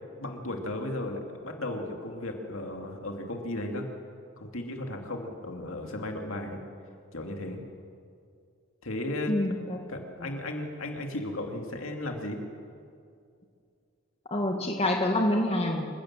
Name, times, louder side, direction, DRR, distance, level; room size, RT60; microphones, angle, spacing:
voice 1, 0.2-3.9 4.4-6.6 7.1-7.6 8.8-9.3 9.9-12.4, left 1 dB, 65° left, 3 dB, 2.6 m, -35 dB
voice 2, 9.3-9.8 10.2-10.3 14.3-15.8, left 1 dB, 30° left, 2 dB, 1.8 m, -27 dB
27.0 x 16.0 x 7.6 m, 2.4 s
head